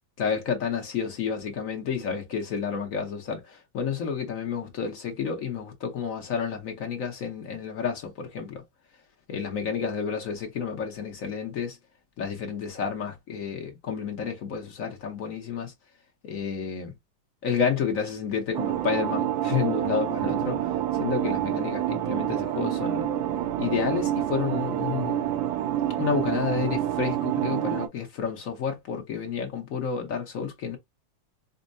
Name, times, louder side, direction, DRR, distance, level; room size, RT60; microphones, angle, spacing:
voice 1, 0.2-8.6 9.3-11.8 12.2-15.7 16.2-16.9 17.4-20.7 21.0-23.1 23.6-25.3 26.0-30.8, left 6 dB, 55° left, 1.0 m, -30 dB
sound 1, 18.5-27.9, right 12 dB, 85° right, 1.4 m, -27 dB
5.3 x 2.1 x 2.5 m
omnidirectional pair, 2.2 m